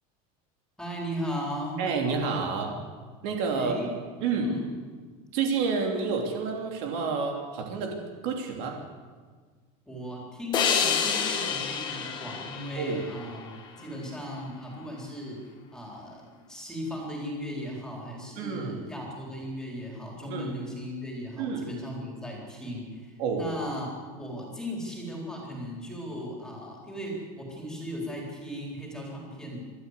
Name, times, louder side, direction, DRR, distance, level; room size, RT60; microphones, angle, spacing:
voice 1, 0.8-1.8 3.5-3.9 4.4-4.7 9.9-13.5 13.8-15.4 15.7-29.6, equal, 5° left, -2 dB, 4.1 m, -37 dB
voice 2, 1.8-2.8 3.2-3.8 4.2-4.5 5.3-8.8 12.8-13.0 18.4-18.8 20.3-20.5 21.4-21.7 23.2-23.5, right 5 dB, 55° right, 2 dB, 3.0 m, -29 dB
sound 1, 10.5-13.8, left 7 dB, 25° left, 1.8 m, -29 dB
25.5 x 13.0 x 8.3 m, 1.5 s
cardioid pair, 180°, 18 cm